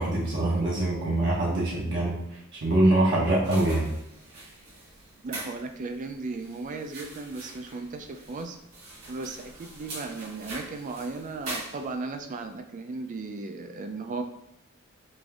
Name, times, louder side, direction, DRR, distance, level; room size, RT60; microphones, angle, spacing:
voice 1, 0.0-3.9, right 1 dB, 55° right, -5 dB, 0.8 m, -24 dB
sound 1, 3.4-12.2, right 2 dB, 85° right, 1.3 m, -43 dB
voice 2, 5.2-8.6 9.1-14.2, right 3 dB, 35° right, 6 dB, 0.3 m, -36 dB
5.0 x 2.6 x 2.4 m, 0.77 s
head